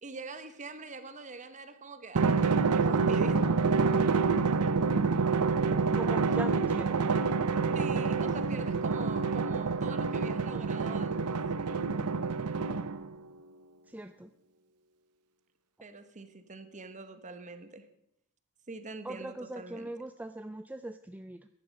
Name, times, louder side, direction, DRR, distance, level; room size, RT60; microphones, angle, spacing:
voice 1, 0.0-3.4 7.7-11.4 15.8-17.9 18.7-19.9, right 3 dB, 35° right, 10 dB, 1.1 m, -44 dB
Drum, 2.2-13.2, right 4 dB, 85° right, 0.7 m, -27 dB
voice 2, 5.9-7.0 13.9-14.3 19.0-21.5, right 1 dB, 5° right, 9 dB, 0.4 m, -40 dB
14.5 x 10.5 x 5.3 m, 0.77 s
head